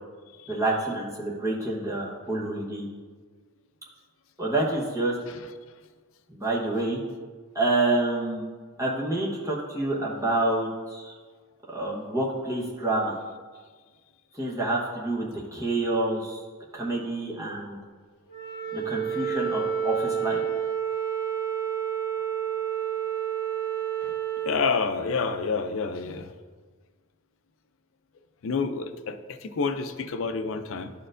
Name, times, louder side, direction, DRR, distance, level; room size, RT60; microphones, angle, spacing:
voice 1, 0.5-2.9 4.4-5.1 6.3-7.0 7.5-8.5 8.8-11.1 11.7-13.2 14.3-16.4 16.7-17.8 18.7-20.4, right 2 dB, 15° right, -5 dB, 1.1 m, -28 dB
Wind instrument woodwind instrument, 18.3-24.6, right 8 dB, 20° left, 1.4 m, -29 dB
voice 2, 24.5-26.3 28.4-30.9, left 5 dB, 60° left, 9 dB, 0.4 m, -28 dB
11.5 x 4.4 x 2.5 m, 1.5 s
head